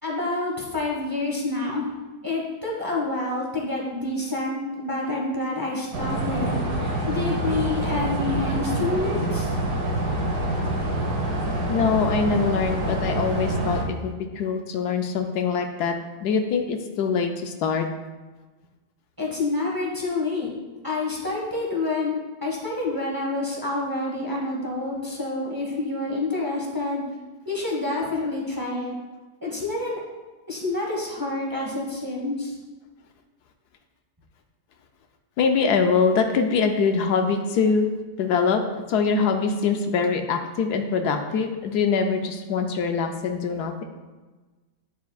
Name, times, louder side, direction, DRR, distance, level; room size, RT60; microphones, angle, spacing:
voice 1, 0.0-1.8 2.2-6.6 7.0-9.5 19.2-20.5 20.8-22.1 22.4-27.0 27.4-28.9 29.4-30.0 30.5-32.6, left 2 dB, 15° right, -3 dB, 1.1 m, -28 dB
sound 1, 5.9-13.8, right 1 dB, 75° right, 1.6 m, -26 dB
voice 2, 11.7-15.9 16.2-17.9 35.4-37.9 38.2-38.6 38.9-43.8, left 5 dB, 75° left, 5 dB, 1.1 m, -23 dB
9.1 x 6.9 x 2.3 m, 1.2 s
omnidirectional pair, 1.7 m